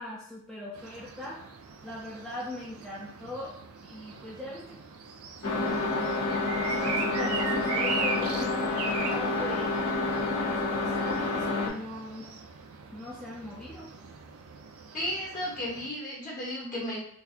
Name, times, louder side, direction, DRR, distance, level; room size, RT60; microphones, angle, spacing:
voice 1, 0.0-1.4 1.8-3.5 3.9-4.8 6.5-9.7 10.3-12.3 12.9-13.9, left 1 dB, 5° left, -5 dB, 0.4 m, -40 dB
sound 1, 0.7-15.9, right 4 dB, 75° right, 0.5 m, -39 dB
sound 2, 5.4-11.7, left 2 dB, 80° left, 0.9 m, -28 dB
voice 2, 14.9-17.0, left 1 dB, 40° left, -5 dB, 1.5 m, -34 dB
3.9 x 2.6 x 2.8 m, 0.67 s
head